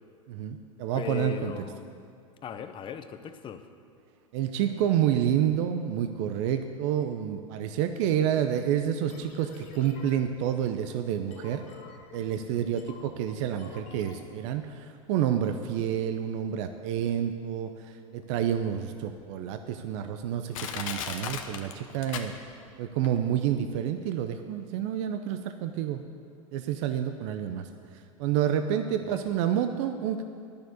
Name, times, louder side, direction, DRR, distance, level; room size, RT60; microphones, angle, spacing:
voice 1, 0.3-1.5 4.3-11.6 12.1-17.7 18.1-22.3 22.8-26.0 26.5-27.7 28.2-30.2, right 9 dB, 60° right, 7 dB, 0.6 m, -29 dB
voice 2, 0.9-2.0 2.4-3.7 12.4-12.8 29.1-29.3, left 8 dB, 30° left, 9 dB, 0.7 m, -38 dB
sound 1, 9.1-14.8, left 5 dB, 45° left, 1.5 m, -50 dB
Crushing, 18.4-18.5 19.2-19.3 20.0-20.1 20.5-22.7 23.0-23.1, left 7 dB, 75° left, 1.0 m, -36 dB
10.5 x 6.7 x 8.0 m, 2.4 s
hypercardioid pair, 115°, 17 cm